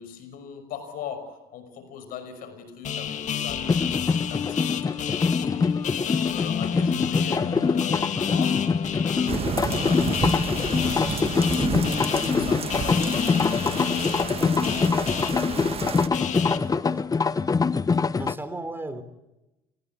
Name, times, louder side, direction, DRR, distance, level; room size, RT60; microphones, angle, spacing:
voice 1, 0.0-8.7 9.1-12.0 12.3-15.1, left 7 dB, 70° left, 10 dB, 5.7 m, -41 dB
sound 1, 2.8-16.6, left 8 dB, 55° left, 2.0 m, -31 dB
sound 2, 3.7-18.3, left 5 dB, 25° left, 0.8 m, -24 dB
sound 3, 9.3-16.1, right 6 dB, 40° right, 1.6 m, -31 dB
voice 2, 15.8-17.1 18.2-19.0, right 2 dB, 15° right, 11 dB, 3.5 m, -37 dB
29.5 x 19.5 x 8.4 m, 0.98 s
supercardioid pair, 85°, 15 cm